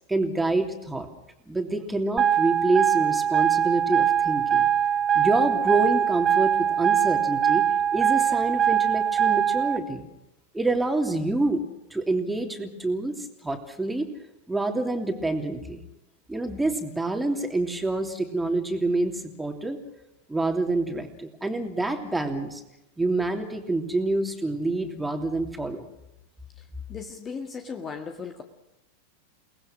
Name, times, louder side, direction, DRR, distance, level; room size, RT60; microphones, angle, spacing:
voice 1, 0.1-1.1 1.5-4.7 5.1-7.6 7.9-10.1 10.5-11.6 11.9-14.1 14.5-15.8 16.3-19.8 20.3-22.6 23.0-25.9, right 2 dB, 5° right, 4 dB, 3.1 m, -27 dB
sound 1, 2.2-9.8, right 9 dB, 25° right, 1.3 m, -22 dB
voice 2, 26.9-28.4, left 5 dB, 20° left, 5 dB, 1.8 m, -37 dB
30.0 x 19.5 x 6.2 m, 0.90 s
figure-of-eight pair, 90°, 0 cm